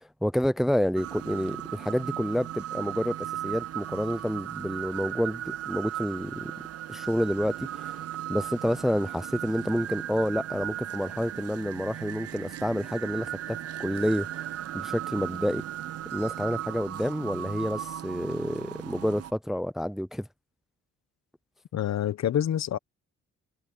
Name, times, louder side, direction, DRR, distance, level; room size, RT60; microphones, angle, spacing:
voice 1, 0.0-3.2 3.4-6.5 6.9-8.0 8.3-14.3 14.7-15.6 16.1-20.3, equal, ahead, 0.6 m, -29 dB
sound 1, 1.0-19.3, right 12 dB, 55° right, 0.6 m, -37 dB
voice 2, 21.7-22.8, left 10 dB, 60° left, 1.2 m, -27 dB
cardioid pair, 90°, 30 cm